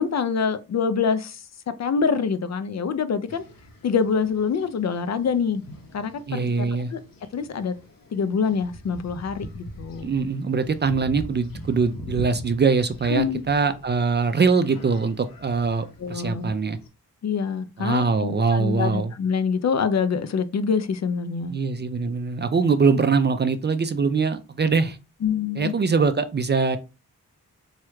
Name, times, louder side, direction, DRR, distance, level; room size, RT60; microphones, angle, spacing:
voice 1, 0.0-1.4 1.8-3.4 3.8-5.6 5.9-7.0 7.3-7.7 8.1-10.1 13.1-13.4 16.0-16.5 17.2-21.5 25.2-25.7, left 6 dB, 50° left, 0.5 m, -25 dB
sound 1, 3.3-16.9, equal, 70° left, 0.8 m, -42 dB
voice 2, 6.3-6.9 10.0-16.8 17.8-19.1 21.5-25.0 25.6-26.8, right 4 dB, 30° right, 0.4 m, -23 dB
3.1 x 2.3 x 3.1 m
cardioid pair, 45°, 35 cm